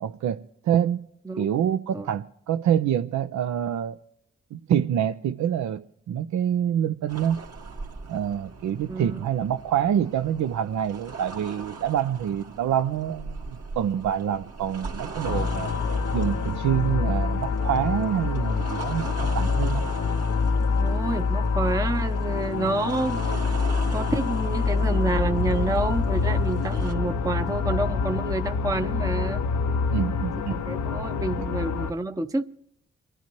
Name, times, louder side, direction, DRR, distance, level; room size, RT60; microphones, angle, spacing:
voice 1, 0.0-1.0 1.4-4.0 4.5-5.8 6.1-7.4 8.1-15.7 16.1-19.8 29.9-30.6, right 9 dB, 75° right, 0.6 m, -26 dB
sound 1, 7.1-26.9, right 4 dB, 55° right, 2.0 m, -41 dB
voice 2, 8.9-9.2 20.8-23.4 23.9-29.4 30.5-32.4, right 2 dB, 10° right, 0.7 m, -28 dB
sound 2, 15.2-31.9, left 4 dB, 75° left, 0.7 m, -26 dB
28.5 x 10.0 x 3.0 m
supercardioid pair, 45°, 29 cm